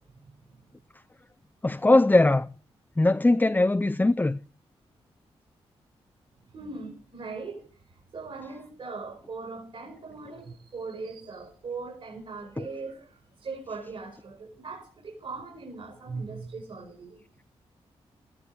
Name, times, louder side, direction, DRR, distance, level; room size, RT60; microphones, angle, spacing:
voice 1, 0.1-0.6 6.5-17.2, right 4 dB, 65° right, 5.1 m, -40 dB
voice 2, 1.6-2.5 3.0-4.4 12.6-12.7, left 2 dB, 15° left, 0.5 m, -21 dB
13.5 x 11.0 x 4.7 m
supercardioid pair, 50°, 11 cm